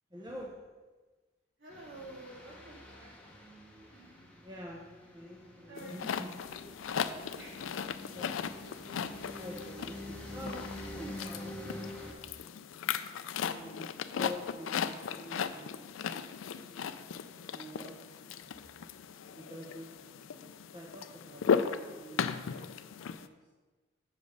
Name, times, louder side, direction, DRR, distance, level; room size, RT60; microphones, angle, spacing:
voice 1, 0.1-0.6 4.4-4.8 5.1-6.3 8.1-8.4 9.4-12.0 13.5-16.9 17.5-18.7 19.3-22.3 22.6-23.4, left 1 dB, 20° right, -2 dB, 0.7 m, -47 dB
voice 2, 1.6-3.1 3.9-4.3 5.7-6.0 6.4-6.9 7.3-7.8 9.5-9.8 10.0-10.2 10.9-11.1 21.5-21.8, right 1 dB, 60° right, -4 dB, 2.3 m, -51 dB
sound 1, 1.7-12.1, left 1 dB, 5° left, 1.0 m, -47 dB
sound 2, 5.8-23.3, left 6 dB, 70° left, 0.4 m, -37 dB
6.4 x 5.2 x 6.4 m, 1.3 s
head